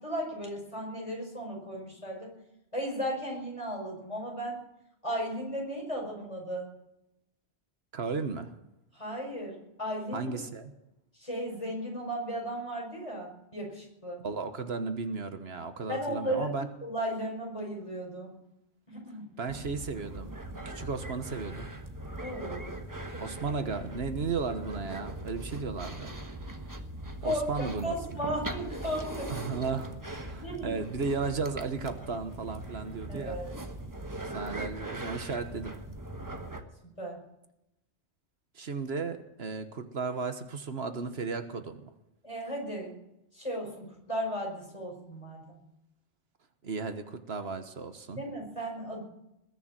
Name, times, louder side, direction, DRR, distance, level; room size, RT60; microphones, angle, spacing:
voice 1, 0.0-2.3 2.7-4.6 5.0-6.7 8.9-10.5 11.2-14.2 15.9-18.4 18.9-19.3 20.5-20.6 22.2-22.7 23.1-23.3 27.2-27.4 27.8-29.5 30.4-30.8 33.1-33.6 37.0-37.2 42.2-42.9 43.3-45.6 48.2-49.0, equal, 30° left, -1 dB, 5.6 m, -35 dB
voice 2, 7.9-8.5 10.1-10.7 14.2-16.7 19.4-20.3 20.6-21.7 23.2-26.1 27.2-28.0 29.3-33.4 34.3-35.7 38.5-41.8 46.6-48.2, right 4 dB, 75° right, 9 dB, 1.4 m, -34 dB
sound 1, 19.5-36.6, right 1 dB, 20° right, 1.3 m, -40 dB
21.0 x 7.0 x 9.7 m, 0.87 s
omnidirectional pair, 1.1 m